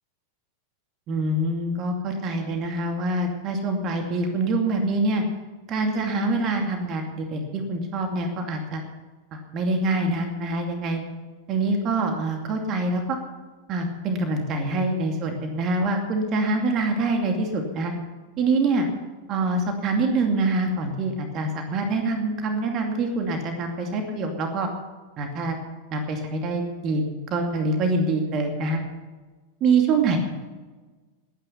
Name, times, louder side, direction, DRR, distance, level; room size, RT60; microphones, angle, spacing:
voice 1, 1.1-5.2 5.7-8.8 9.3-11.0 11.5-13.2 13.7-17.9 18.4-18.9 19.3-24.7 25.2-25.6 25.9-28.8 29.6-30.2, right 2 dB, 35° right, 4 dB, 2.5 m, -25 dB
20.5 x 10.0 x 5.8 m, 1.3 s
figure-of-eight pair, 90°, 0 cm